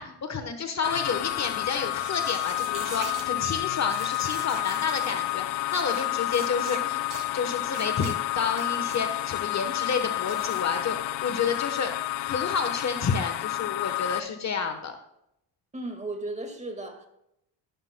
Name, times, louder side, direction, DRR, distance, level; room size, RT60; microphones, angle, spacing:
voice 1, 0.0-7.0 7.3-15.0, left 5 dB, 35° left, 7 dB, 1.2 m, -30 dB
sound 1, 0.8-14.2, left 15 dB, 75° left, 0.7 m, -30 dB
sound 2, 1.9-3.3 3.9-5.1 5.7-6.1 6.3-6.8 7.1-7.3 7.7-8.2 8.5-9.0 10.2-10.6, right 6 dB, 45° right, 2.0 m, -42 dB
voice 2, 15.7-17.1, right 2 dB, 15° right, 5 dB, 1.8 m, -35 dB
14.5 x 12.0 x 2.2 m, 0.79 s
cardioid pair, 115°, 44 cm